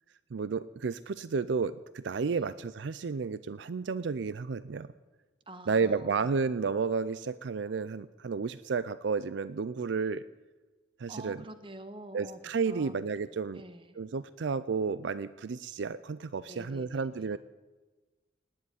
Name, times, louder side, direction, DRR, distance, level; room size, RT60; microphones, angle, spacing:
voice 1, 0.3-4.9 5.7-10.2 11.0-11.4 12.1-13.6 14.0-17.4, right 5 dB, 65° right, 16 dB, 0.4 m, -32 dB
voice 2, 5.5-6.2 11.1-12.4 12.7-12.9 13.5-14.0 16.5-17.3, right 1 dB, 25° right, 10 dB, 1.2 m, -47 dB
18.5 x 7.9 x 9.5 m, 1.2 s
head